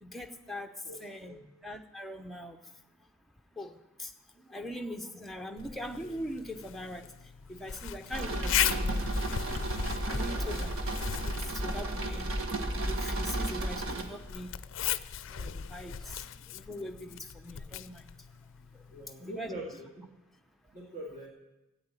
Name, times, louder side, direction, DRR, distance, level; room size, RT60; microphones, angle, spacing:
voice 1, 0.0-0.7 1.0-2.6 3.6-4.1 4.5-7.1 7.5-9.4 10.1-10.8 11.2-12.3 12.8-14.5 15.3-18.1 19.2-19.8, left 1 dB, ahead, 4 dB, 0.7 m, -42 dB
voice 2, 0.8-1.5 10.2-10.7 18.9-20.1 20.7-21.3, right 1 dB, 35° right, -3 dB, 2.1 m, -44 dB
Zipper (clothing), 5.6-19.1, left 9 dB, 60° left, 0.4 m, -38 dB
sound 1, 8.1-14.0, right 1 dB, 70° right, 1.5 m, -33 dB
13.0 x 8.9 x 8.9 m, 0.98 s
head